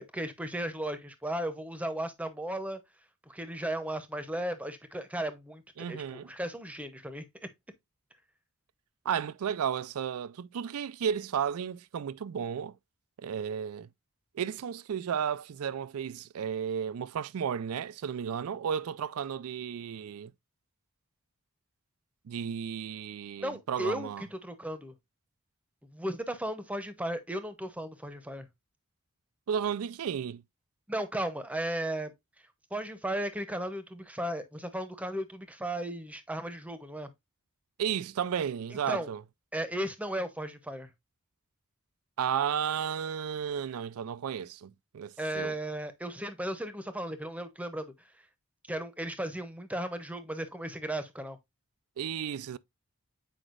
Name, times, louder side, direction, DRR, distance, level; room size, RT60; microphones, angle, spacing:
voice 1, 0.0-2.8 3.3-7.2 23.4-24.9 25.9-28.5 30.9-32.1 32.7-37.1 38.7-39.1 39.5-40.9 45.2-47.9 48.7-51.4, right 1 dB, 5° right, 0.8 m, -35 dB
voice 2, 5.8-6.3 9.1-12.7 13.2-13.9 14.3-20.3 22.3-24.2 29.5-30.4 37.8-39.2 42.2-45.5 52.0-52.6, right 8 dB, 75° right, 0.4 m, -33 dB
8.0 x 4.9 x 2.4 m
head